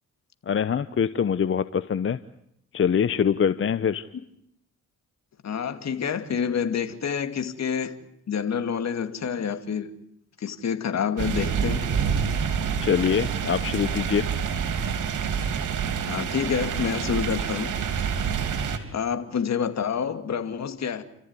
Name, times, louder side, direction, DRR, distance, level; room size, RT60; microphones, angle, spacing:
voice 1, 0.5-2.2 2.7-4.0 12.8-14.2, left 7 dB, 45° left, 0.9 m, -24 dB
voice 2, 5.4-8.0 8.3-9.9 10.4-11.9 16.1-17.7 18.9-21.0, left 7 dB, 60° left, 2.4 m, -28 dB
sound 1, 11.2-18.8, right 7 dB, 80° right, 3.0 m, -27 dB
29.5 x 14.5 x 9.8 m
cardioid pair, 75°, 30 cm